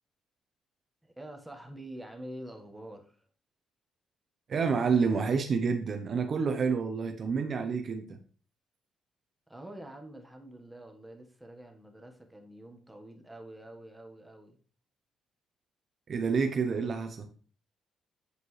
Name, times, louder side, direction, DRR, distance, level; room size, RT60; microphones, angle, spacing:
voice 1, 1.0-3.2 9.5-14.6, right 1 dB, 5° right, 1.4 m, -46 dB
voice 2, 4.5-8.2 16.1-17.3, right 5 dB, 50° right, 0.7 m, -28 dB
7.9 x 5.1 x 3.2 m
cardioid pair, 90°, 0 cm